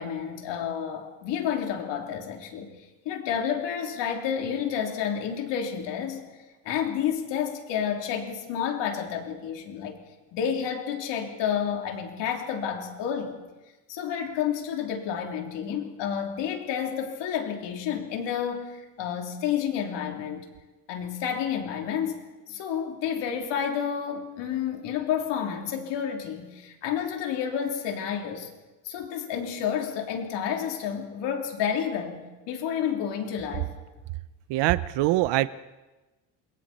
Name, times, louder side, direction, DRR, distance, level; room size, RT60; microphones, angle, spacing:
voice 1, 0.0-2.7 3.0-6.3 6.6-10.0 10.3-13.3 13.9-20.4 20.9-28.5 28.8-33.7, left 8 dB, 80° left, 2 dB, 3.3 m, -30 dB
voice 2, 34.5-35.5, right 17 dB, 75° right, 15 dB, 0.7 m, -23 dB
28.0 x 21.5 x 4.3 m, 1.1 s
cardioid pair, 130°, 42 cm